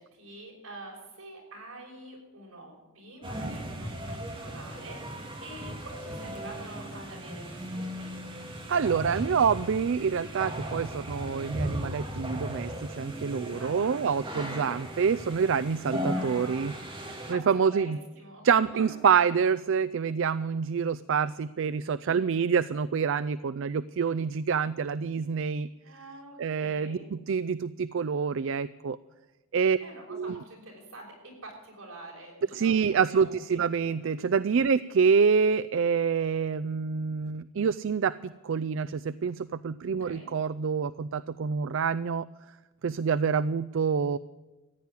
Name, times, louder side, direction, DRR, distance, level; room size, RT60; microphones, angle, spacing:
voice 1, 0.0-8.1 13.5-14.1 16.1-16.9 17.3-18.5 18.7-19.0 22.0-22.3 25.8-27.0 29.8-33.6 34.6-34.9 39.8-40.3, right 2 dB, 80° right, 0 dB, 6.2 m, -46 dB
sound 1, 3.2-17.3, equal, 25° right, 2.3 m, -37 dB
voice 2, 8.7-16.7 17.0-18.0 18.4-25.7 26.4-29.0 29.5-29.8 30.1-30.4 32.5-42.3 42.8-44.2, right 6 dB, 60° right, 16 dB, 0.4 m, -27 dB
15.0 x 9.6 x 8.3 m, 1.2 s
head